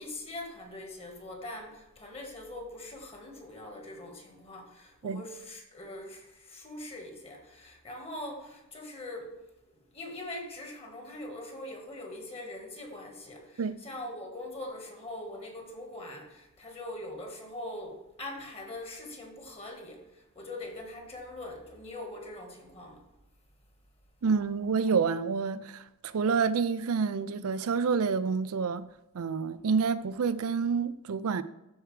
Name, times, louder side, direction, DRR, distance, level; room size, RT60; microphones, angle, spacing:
voice 1, 0.0-9.4 9.7-23.0, left 1 dB, 25° left, 1.6 m, -42 dB
voice 2, 24.2-28.9 29.1-31.4, right 5 dB, 75° right, 0.5 m, -28 dB
12.5 x 4.5 x 3.3 m
head